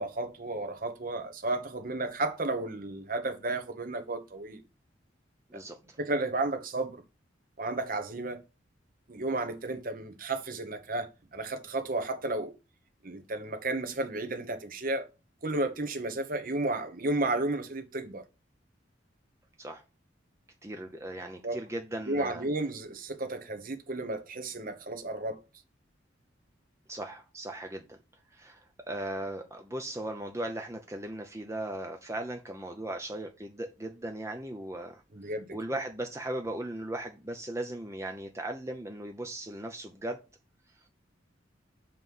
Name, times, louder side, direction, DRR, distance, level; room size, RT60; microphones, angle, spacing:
voice 1, 0.0-4.6 5.5-5.6 6.0-7.0 7.6-8.4 9.1-12.5 13.0-15.1 15.4-18.2 21.4-21.6 22.1-25.4 35.1-35.4, right 2 dB, 50° right, 1.1 m, -33 dB
voice 2, 5.5-6.0 19.6-19.8 20.6-22.4 26.9-28.0 28.3-40.2, right 1 dB, 15° right, 0.7 m, -38 dB
7.5 x 3.2 x 5.4 m
head